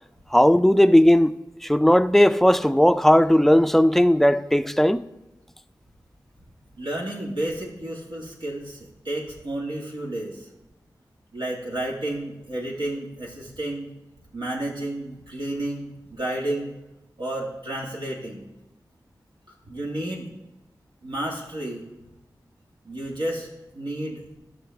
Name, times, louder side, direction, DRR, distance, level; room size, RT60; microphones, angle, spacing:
voice 1, 0.3-5.0, left 1 dB, 5° left, 0.4 m, -17 dB
voice 2, 6.8-10.5 11.3-13.9 14.3-16.7 17.2-18.4 19.5-20.3 21.0-21.9 22.8-23.5 23.7-24.2, right 1 dB, 80° right, 2.1 m, -31 dB
11.5 x 6.1 x 3.5 m
cardioid pair, 45°, 8 cm